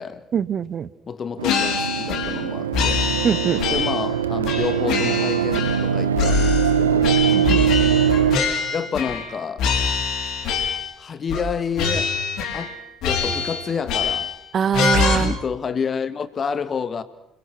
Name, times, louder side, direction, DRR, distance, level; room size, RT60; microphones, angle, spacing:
voice 1, 0.3-0.9 3.2-3.6 7.3-7.7 14.5-15.3, right 7 dB, 45° right, 1.0 m, -22 dB
voice 2, 1.1-3.0 3.7-7.2 8.7-9.7 11.0-12.1 12.5-12.7 13.0-14.3 15.1-17.0, left 6 dB, 40° left, 2.0 m, -29 dB
sound 1, 1.4-2.4 2.7-4.1 4.4-5.9 6.1-9.3 9.6-11.0 11.3-11.5 11.8-12.7 13.0-14.4 14.7-15.1, left 5 dB, 55° left, 5.4 m, -24 dB
sound 2, 1.4-8.4, right 8 dB, 80° right, 0.9 m, -21 dB
30.0 x 22.5 x 6.3 m
figure-of-eight pair, 55°, 0 cm